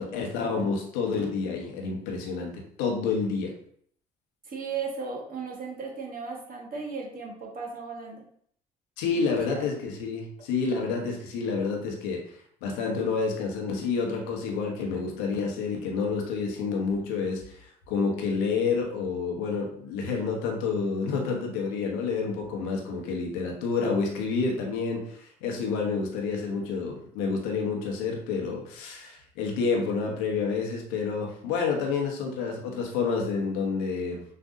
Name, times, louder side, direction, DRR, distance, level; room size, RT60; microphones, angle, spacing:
voice 1, 0.0-3.5 9.0-17.6 17.9-34.2, left 4 dB, 75° left, 1 dB, 1.0 m, -29 dB
voice 2, 4.4-8.2 9.1-9.7, right 5 dB, 45° right, 0 dB, 1.4 m, -36 dB
6.3 x 2.5 x 2.7 m, 0.63 s
hypercardioid pair, 50°, 21 cm